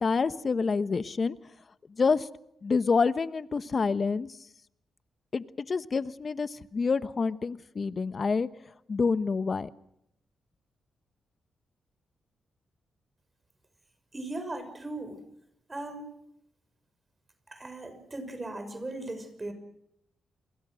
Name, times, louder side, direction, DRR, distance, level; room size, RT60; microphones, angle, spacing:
voice 1, 0.0-1.3 2.0-2.3 2.6-4.3 5.3-8.5 8.9-9.7, left 4 dB, 50° left, 14 dB, 1.2 m, -27 dB
voice 2, 14.1-15.2 15.7-16.1 17.5-19.5, right 2 dB, 30° right, 9 dB, 6.1 m, -38 dB
30.0 x 22.0 x 6.4 m, 0.81 s
supercardioid pair, 55°, 0 cm